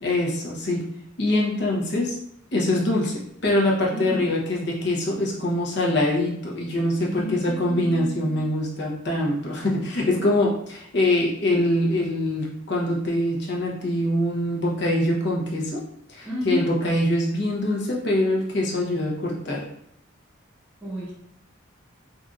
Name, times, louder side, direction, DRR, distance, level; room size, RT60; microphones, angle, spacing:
voice 1, 0.0-0.8 1.2-2.2 2.5-15.8 16.1-19.7, left 1 dB, 55° left, -3 dB, 0.8 m, -24 dB
voice 2, 3.9-4.2 7.0-8.5 16.2-16.7 20.8-21.1, equal, 10° right, -15 dB, 1.3 m, -31 dB
3.8 x 2.6 x 2.3 m, 0.74 s
head